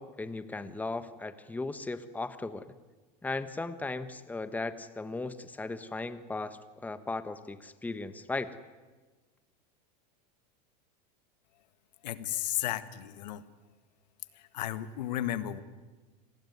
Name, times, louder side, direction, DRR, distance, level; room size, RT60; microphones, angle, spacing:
voice 1, 0.0-2.7 3.2-8.5, left 3 dB, 5° left, 11 dB, 1.2 m, -37 dB
voice 2, 12.0-13.4 14.3-15.6, left 13 dB, 85° left, 12 dB, 1.7 m, -34 dB
28.5 x 20.0 x 9.5 m, 1.3 s
supercardioid pair, 130°, 21 cm